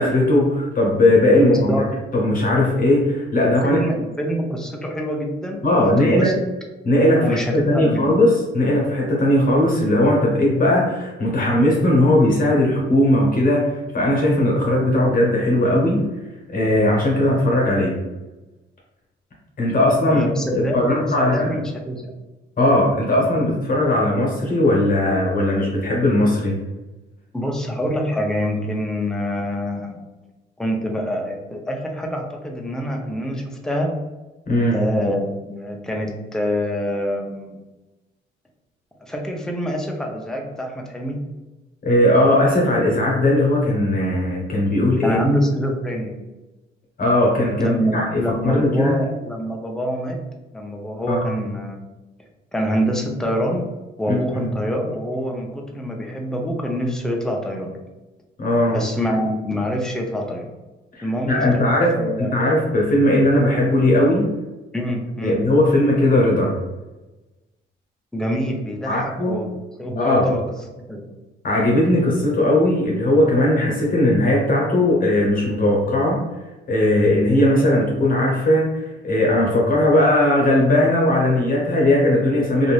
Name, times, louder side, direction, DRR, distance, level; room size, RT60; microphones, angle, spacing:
voice 1, 0.0-1.8 2.1-3.8 5.6-6.3 6.8-16.0 16.5-18.0 19.6-20.2 20.5-21.5 22.6-26.6 34.5-34.8 41.8-45.2 47.0-49.0 51.1-51.4 54.1-54.2 58.4-58.8 60.9-64.3 65.2-66.6 68.9-69.4 70.0-70.3 71.4-76.2 76.7-82.7, left 1 dB, 45° left, -3 dB, 1.0 m, -18 dB
voice 2, 1.4-1.8 3.4-6.3 7.2-8.1 20.0-21.0 21.3-22.1 27.3-30.0 30.6-34.0 34.7-37.6 39.1-41.2 45.0-46.2 47.6-50.2 50.5-51.8 52.5-57.8 58.7-60.5 61.0-62.4 64.7-65.4 68.1-69.5 69.8-70.4 70.9-71.1, equal, 5° left, 1 dB, 0.5 m, -25 dB
2.5 x 2.5 x 3.2 m, 1.1 s
cardioid pair, 90°, 20 cm